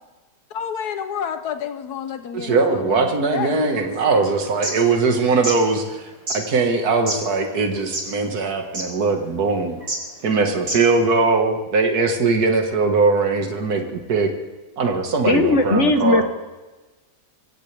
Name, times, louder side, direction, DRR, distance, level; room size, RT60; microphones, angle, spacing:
voice 1, 0.5-4.2, left 8 dB, 80° left, 10 dB, 1.3 m, -30 dB
voice 2, 2.3-6.1 6.3-9.8 10.2-14.3 14.8-16.2, right 4 dB, 70° right, 3 dB, 2.2 m, -20 dB
sound 1, 4.4-4.7 5.3-5.6 6.3-6.4 7.1-7.2 7.8-8.2 8.4-8.5 8.7-8.9 9.8-10.0 10.6-10.9, right 1 dB, 50° right, 3.8 m, -26 dB
voice 3, 15.3-16.2, left 2 dB, 50° left, 6 dB, 1.6 m, -17 dB
25.0 x 16.5 x 3.4 m, 1.2 s
omnidirectional pair, 1.7 m